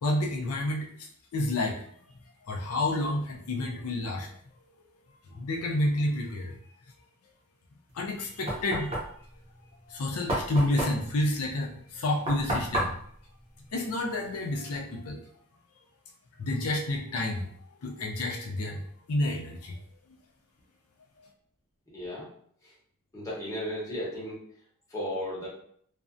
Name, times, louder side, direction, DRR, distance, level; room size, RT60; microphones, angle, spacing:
voice 1, 0.0-0.9 1.3-1.9 2.5-4.3 5.3-6.6 7.9-9.0 9.9-13.0 13.7-15.3 16.4-17.5 17.8-18.8 19.1-19.8, left 1 dB, 85° left, 0 dB, 0.5 m, -29 dB
Knock, 7.9-14.4, right 1 dB, 25° right, 0.6 m, -34 dB
voice 2, 21.9-22.3 22.6-22.7 23.1-24.4 24.9-25.5, equal, 15° left, -7 dB, 0.8 m, -34 dB
2.5 x 2.1 x 2.5 m, 0.63 s
head